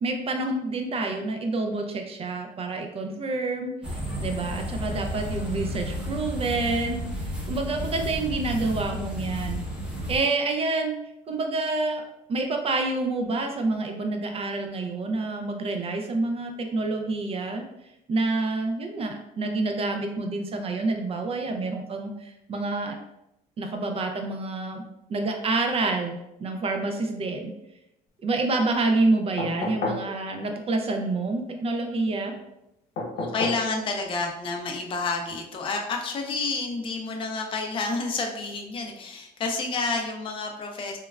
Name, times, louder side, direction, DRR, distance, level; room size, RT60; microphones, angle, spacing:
voice 1, 0.0-9.6 10.1-10.9 11.3-12.0 12.3-17.6 18.1-23.0 23.6-24.8 25.1-27.5 28.2-32.4, right 3 dB, 35° right, 4 dB, 0.4 m, -28 dB
sound 1, 3.8-10.2, equal, 5° right, 0.7 m, -32 dB
sound 2, 29.4-30.1 33.0-33.7 35.3-35.4, left 2 dB, 90° left, 1.0 m, -30 dB
voice 2, 33.2-41.0, left 3 dB, 30° left, 2 dB, 0.4 m, -29 dB
3.1 x 2.1 x 2.3 m, 0.86 s
cardioid pair, 110°, 17 cm